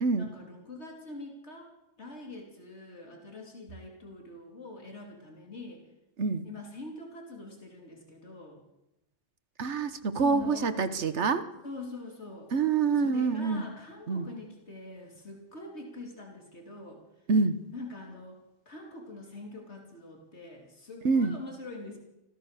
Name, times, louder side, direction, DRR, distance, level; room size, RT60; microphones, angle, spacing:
voice 1, 0.2-1.7 2.0-5.8 6.4-8.6 10.1-10.8 11.6-12.5 13.0-17.0 17.7-18.4 18.7-22.0, left 2 dB, 75° left, 1 dB, 3.2 m, -44 dB
voice 2, 9.6-11.4 12.5-13.6 14.1-14.3 17.3-17.6 21.0-21.4, right 4 dB, 85° right, 11 dB, 1.5 m, -26 dB
25.0 x 16.0 x 6.7 m, 0.91 s
omnidirectional pair, 1.2 m